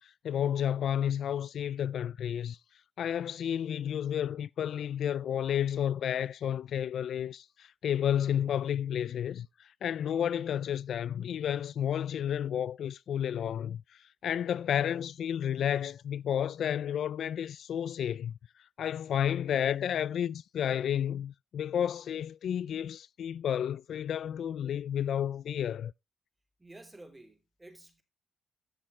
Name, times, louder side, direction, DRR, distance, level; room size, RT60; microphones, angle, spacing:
voice 1, 0.0-2.6 3.0-18.3 18.8-25.9, left 9 dB, 65° left, 0.4 m, -31 dB
voice 2, 26.6-28.0, right 2 dB, 15° right, 3.4 m, -52 dB
13.5 x 6.6 x 3.3 m
cardioid pair, 90°, 0 cm